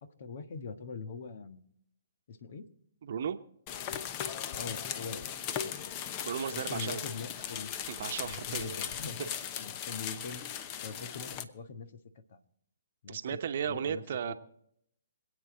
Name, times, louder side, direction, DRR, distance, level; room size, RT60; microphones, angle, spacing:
voice 1, 0.2-1.6 2.3-2.7 4.5-5.2 5.6-5.8 6.5-7.7 8.2-9.3 9.6-10.4 10.8-12.0 12.3-12.4 13.0-14.3, left 5 dB, 55° left, 9 dB, 1.4 m, -43 dB
voice 2, 3.0-3.4 6.2-7.0 7.9-8.9 13.1-14.3, right 8 dB, 55° right, 8 dB, 1.0 m, -35 dB
sound 1, 3.7-11.4, left 9 dB, 30° left, 0.9 m, -38 dB
26.0 x 8.9 x 3.9 m, 0.72 s
figure-of-eight pair, 130°, 0 cm